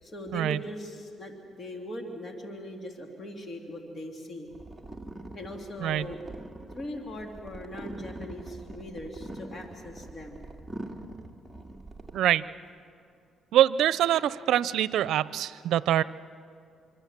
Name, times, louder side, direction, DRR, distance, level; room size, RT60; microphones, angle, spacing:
voice 1, 0.0-4.5 5.3-6.2 6.7-10.5, left 1 dB, 40° left, 2 dB, 3.0 m, -40 dB
sound 1, 4.5-12.2, right 1 dB, 5° right, 2.2 m, -43 dB
voice 2, 12.1-12.4 13.5-16.0, right 11 dB, 80° right, 17 dB, 0.6 m, -24 dB
26.0 x 25.5 x 7.5 m, 2.4 s
cardioid pair, 90°, 0 cm